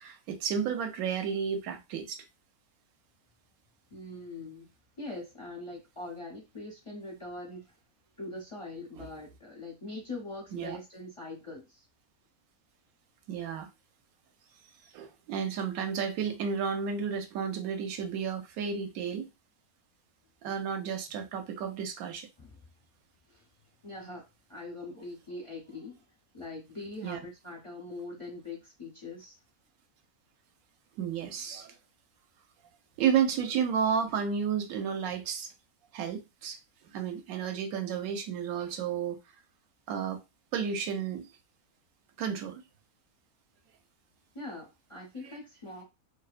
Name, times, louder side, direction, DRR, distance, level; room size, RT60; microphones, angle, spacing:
voice 1, 0.0-2.2 10.5-10.8 13.3-13.7 14.9-19.3 20.4-22.3 27.0-27.2 31.0-31.8 33.0-35.5 35.9-36.6 36.9-39.2 39.9-40.2 40.5-41.3 42.2-42.6 45.2-45.4, right 7 dB, 75° right, 1.0 m, -32 dB
voice 2, 3.9-4.7 5.0-7.7 8.2-11.9 22.4-22.6 23.3-23.4 23.8-24.2 24.5-26.0 26.3-29.4 44.3-45.8, left 2 dB, 35° left, 0.5 m, -42 dB
2.7 x 2.0 x 2.4 m
omnidirectional pair, 1.6 m